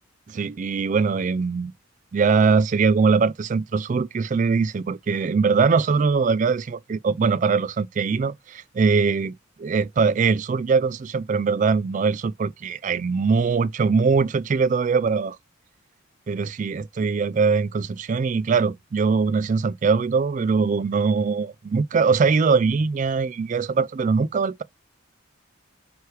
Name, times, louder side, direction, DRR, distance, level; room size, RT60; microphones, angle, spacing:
voice 1, 0.3-1.7 2.1-9.3 9.6-15.4 16.3-24.6, right 5 dB, 40° right, 0.3 m, -22 dB
9.0 x 3.4 x 3.2 m
head